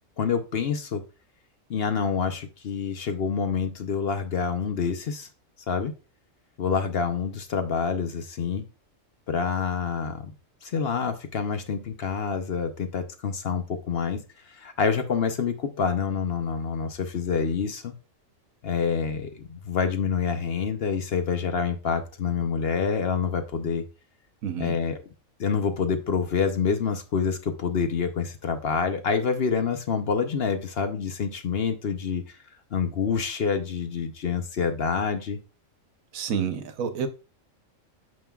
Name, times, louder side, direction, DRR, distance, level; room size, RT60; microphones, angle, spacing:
voice 1, 0.2-1.0 1.7-5.3 5.7-5.9 6.6-8.7 9.3-10.2 10.6-17.9 18.6-23.8 24.6-25.0 25.4-32.4 32.7-35.4, left 6 dB, 55° left, 0.9 m, -27 dB
voice 2, 24.4-24.7 36.1-37.1, right 7 dB, 80° right, 1.3 m, -29 dB
9.0 x 5.4 x 2.3 m
omnidirectional pair, 1.4 m